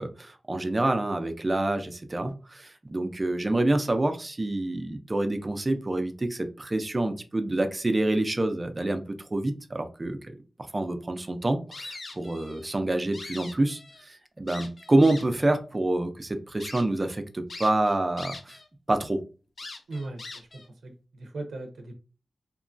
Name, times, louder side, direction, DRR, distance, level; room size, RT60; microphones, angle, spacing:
voice 1, 0.0-9.0 9.3-10.2 10.7-13.8 14.1-18.6 18.9-19.2, right 2 dB, 25° right, 7 dB, 0.4 m, -27 dB
sound 1, 11.7-12.7 13.0-14.0 14.5-15.5 16.0-16.1 16.6-16.8 17.5-18.7 19.0-19.1 19.6-20.7, left 3 dB, 45° left, 0.5 m, -42 dB
voice 2, 19.9-22.0, right 2 dB, 85° right, 3 dB, 0.5 m, -39 dB
2.9 x 2.2 x 2.5 m, 0.34 s
wide cardioid pair, 105°, 0 cm